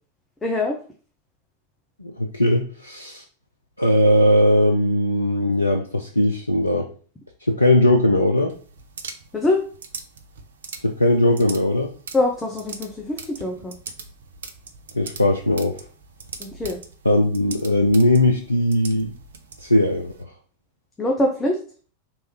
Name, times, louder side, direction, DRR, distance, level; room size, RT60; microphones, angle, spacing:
voice 1, 0.4-0.8 9.3-9.6 12.1-13.7 16.4-16.8 21.0-21.6, left 2 dB, 15° left, 1 dB, 0.7 m, -23 dB
voice 2, 2.0-3.2 3.8-6.9 7.4-8.5 10.8-11.9 14.9-15.8 17.1-19.1 19.6-20.1, left 1 dB, 85° left, 2 dB, 0.4 m, -19 dB
sound 1, 8.5-20.2, right 5 dB, 65° right, 0.6 m, -41 dB
3.3 x 3.1 x 4.4 m, 0.41 s
figure-of-eight pair, 90°, 0 cm